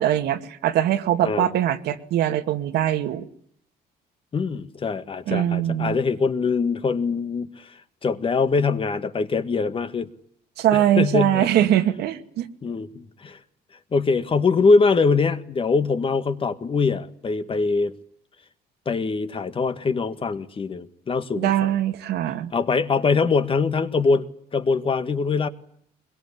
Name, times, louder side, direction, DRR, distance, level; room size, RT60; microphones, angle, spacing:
voice 1, 0.0-3.3 5.3-6.0 10.6-12.5 21.4-22.5, right 12 dB, 75° right, 2.2 m, -22 dB
voice 2, 1.2-1.6 4.3-10.1 10.7-11.7 12.6-13.4 13.9-17.9 18.9-21.8 22.5-25.5, left 4 dB, 30° left, 1.8 m, -23 dB
23.0 x 22.5 x 10.0 m
cardioid pair, 110°, 17 cm